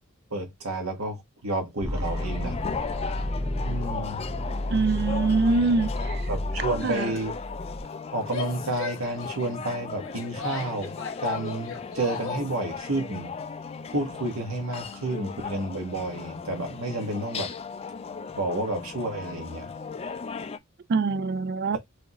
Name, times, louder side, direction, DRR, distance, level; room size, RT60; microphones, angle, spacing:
voice 1, 0.3-2.6 3.6-4.2 6.3-7.4 8.1-13.3 13.9-17.5 18.3-19.7, right 2 dB, 85° right, 1.4 m, -30 dB
sound 1, 1.8-7.8, left 1 dB, 20° right, 1.0 m, -31 dB
sound 2, 2.0-20.6, left 5 dB, 30° left, 0.3 m, -37 dB
voice 2, 4.7-6.2 6.8-7.2 20.9-21.8, right 3 dB, 50° right, 0.4 m, -24 dB
Female speech woman speaking / Yell, 8.2-12.5, left 5 dB, 65° left, 1.1 m, -38 dB
4.9 x 2.6 x 3.0 m
head